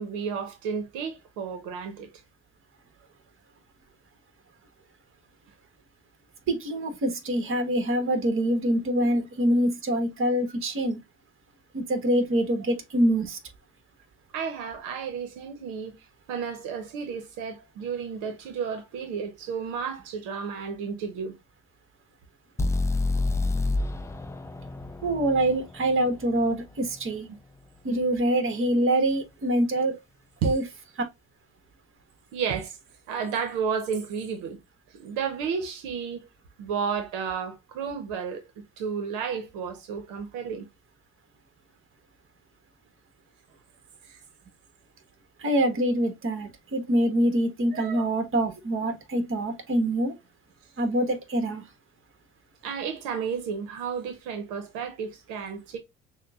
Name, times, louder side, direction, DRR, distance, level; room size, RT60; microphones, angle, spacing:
voice 1, 0.0-2.1 14.3-16.0 16.3-21.3 30.4-30.5 32.3-32.8 33.1-34.6 34.9-36.3 36.6-38.4 38.8-40.7 44.0-44.2 47.7-48.0 52.6-55.8, right 6 dB, 90° right, 0.8 m, -32 dB
voice 2, 6.5-11.0 11.7-13.4 25.0-27.3 27.8-30.0 30.4-30.6 45.4-50.2 50.8-51.6, right 1 dB, 45° right, 1.3 m, -25 dB
sound 1, 22.6-26.5, left 2 dB, 10° left, 0.3 m, -28 dB
6.3 x 2.1 x 2.3 m
cardioid pair, 90°, 29 cm